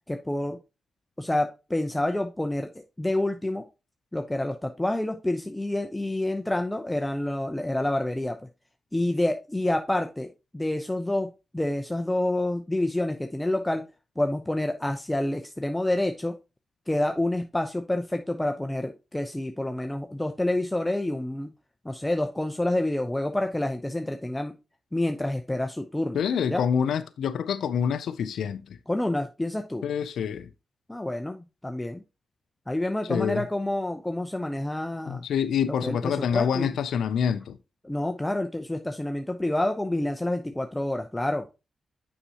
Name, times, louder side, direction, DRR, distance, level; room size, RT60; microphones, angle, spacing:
voice 1, 0.1-0.6 1.2-2.7 3.0-3.6 4.1-8.4 8.9-11.3 11.5-13.8 14.2-16.3 16.9-21.5 21.8-24.5 24.9-26.2 26.5-26.6 28.9-29.8 30.9-32.0 32.7-35.2 35.7-36.7 37.8-41.4, left 1 dB, 15° left, 0.6 m, -28 dB
voice 2, 26.1-28.8 29.8-30.5 33.1-33.4 35.1-37.6, left 7 dB, 80° left, 0.4 m, -26 dB
6.7 x 5.6 x 2.8 m
supercardioid pair, 50°, 0 cm